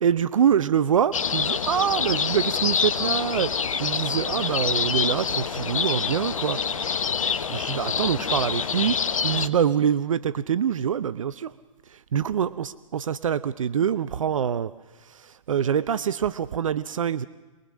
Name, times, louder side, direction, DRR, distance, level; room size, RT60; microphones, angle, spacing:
voice 1, 0.0-3.5 3.8-6.6 7.5-8.9 9.2-11.5 12.1-14.7 15.5-17.3, right 8 dB, 75° right, 15 dB, 0.7 m, -25 dB
sound 1, 1.1-9.5, left 6 dB, 80° left, 1.1 m, -26 dB
26.0 x 21.5 x 6.3 m, 1.2 s
hypercardioid pair, 115°, 17 cm